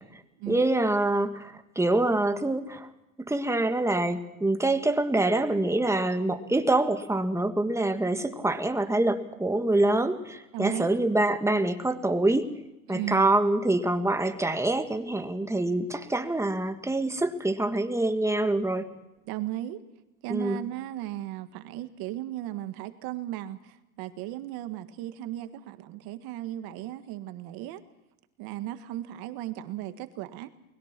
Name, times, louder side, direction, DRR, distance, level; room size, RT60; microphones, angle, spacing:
voice 1, 0.0-2.9 3.2-12.5 12.9-18.9 20.3-20.6, right 2 dB, 5° right, 8 dB, 1.6 m, -25 dB
voice 2, 8.0-8.4 10.5-10.9 12.9-13.3 19.3-19.8 20.2-27.8 28.4-30.5, right 14 dB, 60° right, 10 dB, 1.8 m, -36 dB
23.0 x 21.5 x 6.0 m, 0.95 s
supercardioid pair, 125°, 41 cm